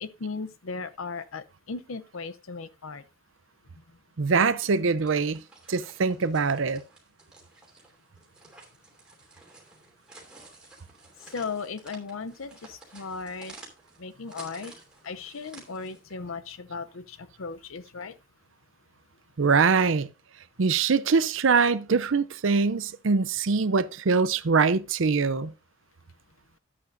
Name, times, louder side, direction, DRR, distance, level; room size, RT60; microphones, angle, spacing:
voice 1, 0.0-3.0 11.2-13.5 14.0-14.7 15.0-18.2, left 4 dB, 85° left, 0.7 m, -37 dB
voice 2, 4.2-5.4 5.7-6.8 19.4-20.1 20.6-25.5, right 4 dB, 75° right, 0.6 m, -23 dB
sound 1, 4.9-16.1, right 2 dB, 5° right, 2.8 m, -52 dB
11.0 x 8.5 x 2.6 m
head